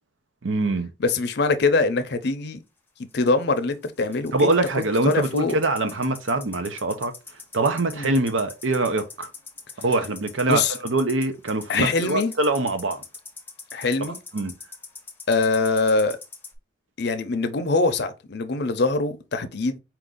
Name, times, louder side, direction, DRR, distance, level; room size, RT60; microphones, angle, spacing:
voice 1, 0.4-0.9 4.3-7.1 7.5-9.3 9.8-13.0 14.3-14.5, right 2 dB, 85° right, 0.7 m, -24 dB
voice 2, 1.0-2.6 3.1-4.5 4.7-5.6 7.9-8.1 10.5-10.7 11.7-12.3 13.7-14.2 15.3-16.2 17.0-19.8, left 3 dB, 60° left, 0.6 m, -23 dB
sound 1, 3.1-16.6, left 4 dB, 10° left, 0.8 m, -42 dB
4.5 x 2.6 x 3.7 m
head